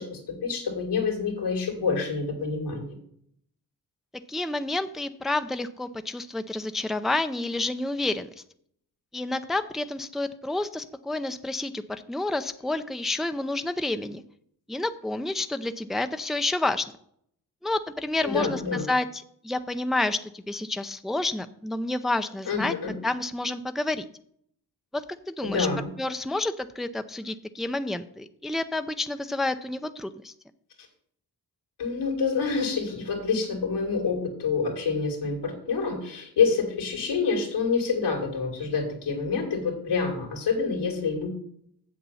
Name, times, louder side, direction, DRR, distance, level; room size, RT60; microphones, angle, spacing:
voice 1, 0.0-2.9 18.2-18.8 22.5-22.9 25.4-25.9 31.8-41.3, left 5 dB, 85° left, 1 dB, 2.5 m, -27 dB
voice 2, 4.3-8.3 9.1-14.2 14.7-16.9 17.6-22.7 23.0-24.0 24.9-25.7 26.0-30.3, left 2 dB, ahead, 9 dB, 0.5 m, -29 dB
7.4 x 7.0 x 5.6 m, 0.66 s
cardioid pair, 55°, 40 cm